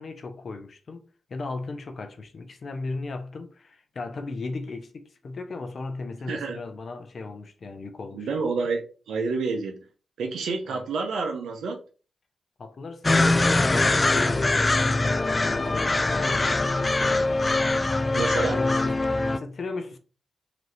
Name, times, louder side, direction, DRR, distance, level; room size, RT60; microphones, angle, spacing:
voice 1, 0.0-8.3 10.6-10.9 12.6-15.1 15.4-16.4 16.7-17.4 18.5-20.0, left 3 dB, 50° left, 0.7 m, -36 dB
voice 2, 6.3-6.6 8.1-9.8 10.2-11.8 18.1-18.6, right 4 dB, 85° right, 0.6 m, -28 dB
sound 1, 13.0-19.4, left 2 dB, 25° left, 0.3 m, -23 dB
3.9 x 3.2 x 3.2 m
cardioid pair, 90°, 0 cm